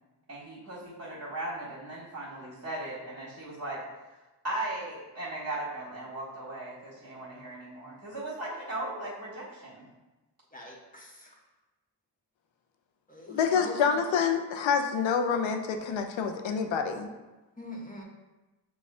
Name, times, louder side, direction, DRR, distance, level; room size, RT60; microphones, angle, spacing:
voice 1, 0.3-3.8 4.4-9.8, right 1 dB, 35° right, -8 dB, 1.5 m, -37 dB
voice 2, 10.5-11.3 13.1-13.7 17.6-18.0, left 1 dB, 20° left, -2 dB, 1.1 m, -43 dB
voice 3, 13.3-17.1, left 6 dB, 85° left, 6 dB, 0.6 m, -27 dB
6.0 x 2.3 x 3.7 m, 1.1 s
cardioid pair, 60°, 45 cm